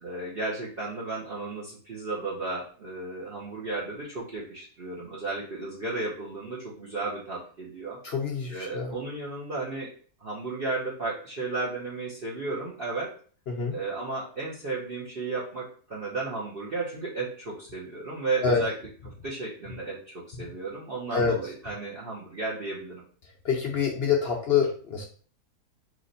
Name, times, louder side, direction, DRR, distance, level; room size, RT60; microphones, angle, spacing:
voice 1, 0.0-8.0 8.5-9.9 10.2-13.1 13.7-18.7 19.2-23.0, right 3 dB, 45° right, -5 dB, 1.0 m, -34 dB
voice 2, 8.0-8.9 13.5-13.7 18.4-18.6 21.1-21.4 23.4-25.0, left 6 dB, 60° left, 0 dB, 0.7 m, -26 dB
3.2 x 3.0 x 3.9 m, 0.44 s
omnidirectional pair, 1.6 m